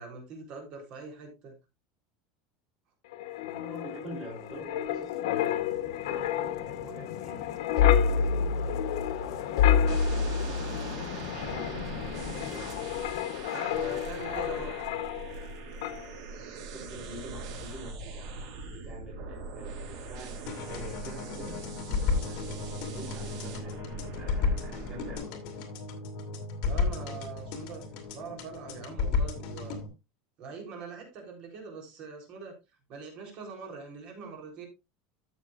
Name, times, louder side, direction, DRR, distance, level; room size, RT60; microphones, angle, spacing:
voice 1, 0.0-1.5 13.5-14.7 26.6-27.8 28.1-29.8 30.4-32.5 32.9-34.7, right 4 dB, 40° right, 2 dB, 3.8 m, -43 dB
Wind, 3.1-15.5 15.8-16.1, left 8 dB, 85° left, 1.0 m, -29 dB
voice 2, 3.5-7.5 7.7-11.8 12.3-13.1 13.8-14.7 16.3-25.6, right 1 dB, 20° right, -3 dB, 3.4 m, -47 dB
sound 1, 9.9-25.2, right 4 dB, 70° right, 5.7 m, -42 dB
sound 2, 20.5-29.9, left 4 dB, 45° left, 2.5 m, -33 dB
13.5 x 7.2 x 2.5 m, 0.25 s
supercardioid pair, 160°, 2 cm